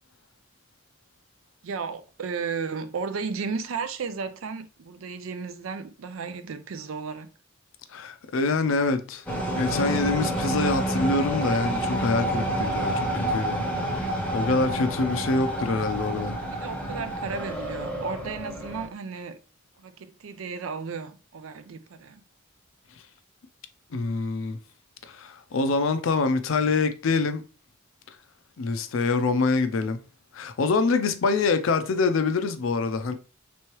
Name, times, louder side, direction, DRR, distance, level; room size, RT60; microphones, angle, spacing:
voice 1, 1.6-7.3 14.2-14.5 16.5-19.4 19.8-22.2, right 5 dB, 90° right, 0.5 m, -34 dB
voice 2, 7.9-9.2 9.6-13.6 14.3-16.4 23.9-24.6 25.1-27.4 28.6-30.0 30.3-33.1, left 3 dB, 75° left, 0.5 m, -25 dB
sound 1, 9.3-18.9, right 1 dB, 5° left, 0.7 m, -29 dB
3.4 x 3.1 x 3.0 m
head